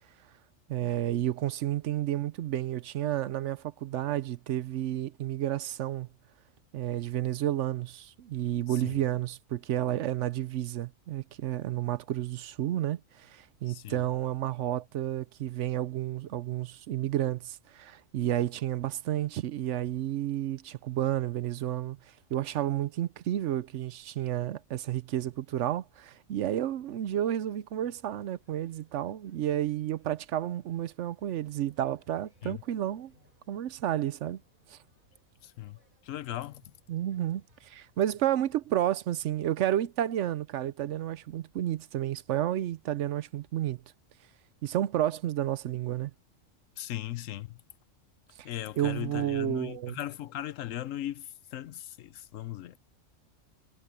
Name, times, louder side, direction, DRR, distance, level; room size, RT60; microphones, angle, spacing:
voice 1, 0.7-6.1 6.7-22.0 22.3-33.1 33.5-34.4 34.7-34.8 36.9-43.8 44.6-46.1 48.8-50.0, right 12 dB, 70° right, 0.9 m, -31 dB
voice 2, 8.7-9.0 13.7-14.0 32.4-32.6 35.4-36.6 46.8-47.6 48.4-52.8, left 13 dB, 80° left, 1.0 m, -38 dB
sound 1, 27.7-38.9, right 1 dB, 40° right, 5.8 m, -67 dB
omnidirectional pair, 1.3 m